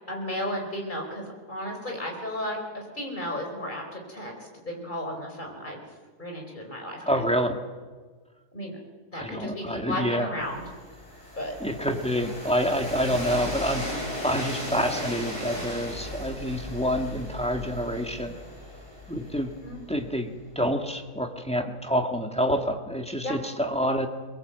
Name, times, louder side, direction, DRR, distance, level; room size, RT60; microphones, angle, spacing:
voice 1, 0.0-5.8 6.2-7.1 8.5-8.8 9.1-10.7 11.4-11.6 19.6-19.8 23.2-23.4, equal, 30° left, 1 dB, 4.9 m, -34 dB
voice 2, 7.0-7.7 9.1-10.3 11.6-13.9 14.2-18.4 19.1-19.6 19.9-24.1, equal, 5° left, 4 dB, 1.7 m, -27 dB
Train, 10.4-20.2, equal, 15° right, 8.1 m, -37 dB
23.5 x 21.5 x 8.2 m, 1.4 s
omnidirectional pair, 1.7 m